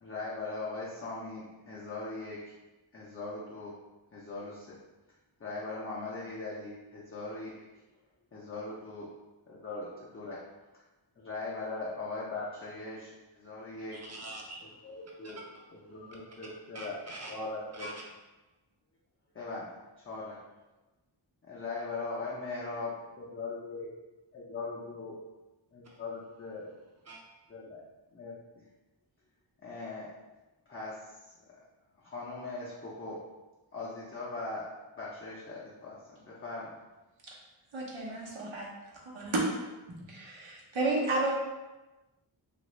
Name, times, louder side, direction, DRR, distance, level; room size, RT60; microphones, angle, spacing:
voice 1, 0.0-2.5 2.9-3.8 4.1-4.8 5.4-7.7 8.3-9.1 9.5-10.4 11.2-14.0 14.8-15.4 15.7-17.0 17.3-17.9 19.3-19.7 20.0-20.4 21.5-23.9 24.3-25.2 25.7-26.7 27.5-27.8 28.1-28.7 29.6-30.1 30.7-31.6 32.0-33.2 33.7-34.7 35.0-36.8, left 3 dB, 30° left, -6 dB, 0.5 m, -40 dB
voice 2, 13.6-17.4 17.7-18.1 25.8-26.0 27.0-27.2, right 1 dB, 35° right, -1 dB, 0.6 m, -47 dB
voice 3, 37.7-38.7 39.0-39.4 40.1-41.3, right 2 dB, 70° right, -3 dB, 0.9 m, -32 dB
2.9 x 2.5 x 3.1 m, 1.1 s
wide cardioid pair, 95°, 48 cm